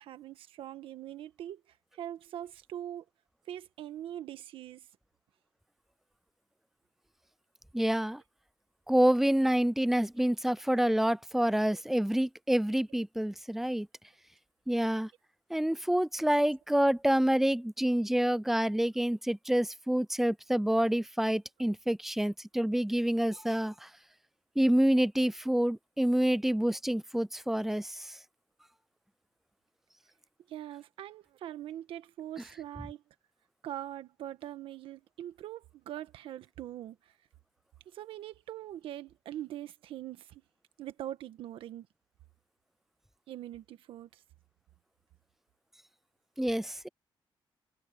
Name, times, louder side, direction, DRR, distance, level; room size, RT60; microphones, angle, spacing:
voice 1, 0.0-1.6 1.9-3.0 3.5-4.9 30.5-33.0 33.6-37.0 37.9-40.4 40.8-41.9 43.3-44.2, right 12 dB, 90° right, 1.4 m, -42 dB
voice 2, 7.7-8.2 8.9-13.9 14.7-15.1 15.5-23.9 24.6-28.2 46.4-46.9, right 1 dB, 5° right, 0.3 m, -27 dB
cardioid pair, 95°, 9 cm